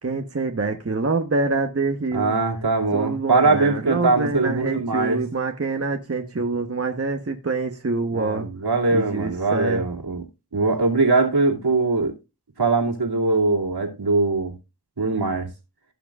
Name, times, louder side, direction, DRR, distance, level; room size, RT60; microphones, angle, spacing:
voice 1, 0.0-2.3 2.9-8.5 8.9-9.8, right 3 dB, 35° right, 1.1 m, -26 dB
voice 2, 2.1-5.2 8.1-10.2 10.5-12.1 12.6-14.6 15.0-15.5, right 3 dB, 70° right, 2.5 m, -21 dB
17.5 x 5.9 x 2.4 m
cardioid pair, 40°, 41 cm